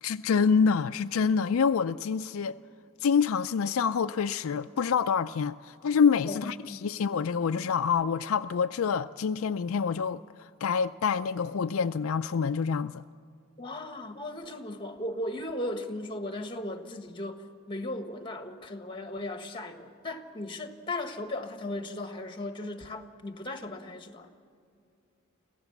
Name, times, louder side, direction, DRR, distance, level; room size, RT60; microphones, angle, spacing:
voice 1, 0.0-2.6 3.0-13.0, left 6 dB, 70° left, 0.4 m, -27 dB
voice 2, 6.3-6.8 13.6-24.3, left 1 dB, 25° left, 1.4 m, -37 dB
25.0 x 16.0 x 7.1 m
head